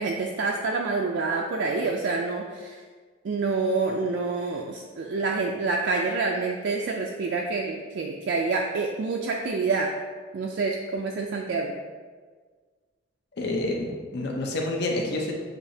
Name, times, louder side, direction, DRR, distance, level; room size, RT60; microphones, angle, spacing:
voice 1, 0.0-2.8 3.2-9.9 10.3-11.7, right 3 dB, 60° right, 0 dB, 0.3 m, -27 dB
voice 2, 13.3-15.3, left 2 dB, 60° left, 0 dB, 0.7 m, -28 dB
6.6 x 2.9 x 2.7 m, 1.5 s
head